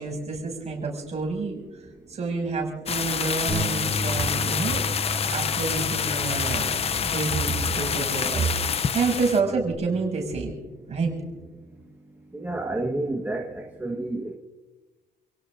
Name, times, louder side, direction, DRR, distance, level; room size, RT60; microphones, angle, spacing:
voice 1, 0.0-1.6 2.1-4.8 5.3-10.5 10.9-11.1, right 4 dB, 35° right, 0 dB, 6.2 m, -28 dB
sound 1, 2.9-9.4, left 7 dB, 30° left, 0.6 m, -27 dB
Bass guitar, 3.5-9.7, right 1 dB, 10° left, 6.7 m, -35 dB
voice 2, 12.3-14.4, right 2 dB, 10° right, -2 dB, 1.5 m, -30 dB
30.0 x 17.5 x 2.6 m, 1.2 s
cardioid pair, 155°, 19 cm